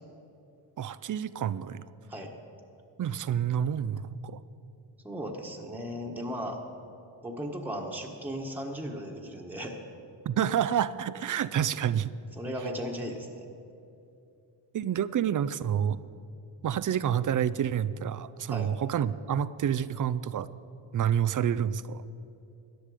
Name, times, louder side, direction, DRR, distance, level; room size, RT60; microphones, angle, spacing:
voice 1, 0.8-1.8 3.0-4.4 10.3-12.1 14.7-16.0 16.6-20.5 20.9-22.0, right 9 dB, 40° right, 15 dB, 0.5 m, -28 dB
voice 2, 5.0-6.6 7.2-9.8 12.4-13.4 18.5-18.7, equal, 5° right, 0 dB, 1.4 m, -36 dB
14.0 x 10.0 x 5.0 m, 2.7 s
cardioid pair, 70°, 48 cm